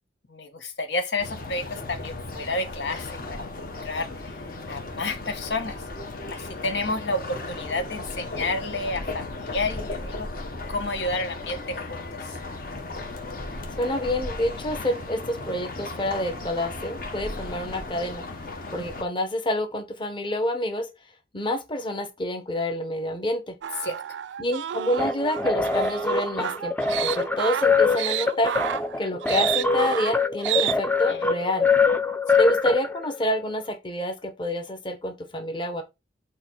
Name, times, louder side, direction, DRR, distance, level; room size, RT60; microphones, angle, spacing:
voice 1, 0.3-3.4 3.8-5.8 6.3-10.3 10.7-12.0 23.8-24.0 31.1-31.2 32.3-32.4, left 2 dB, 70° left, 1.1 m, -30 dB
sound 1, 1.2-19.0, left 2 dB, 55° left, 1.4 m, -36 dB
voice 2, 13.8-18.2 18.7-20.9 21.3-23.5 24.4-26.7 27.0-28.5 29.0-31.7 32.4-35.8, left 1 dB, 25° left, 1.3 m, -28 dB
sound 2, 23.6-30.7, right 11 dB, 80° right, 0.3 m, -30 dB
sound 3, 25.0-33.2, left 4 dB, 10° left, 0.5 m, -24 dB
7.2 x 3.1 x 5.8 m
head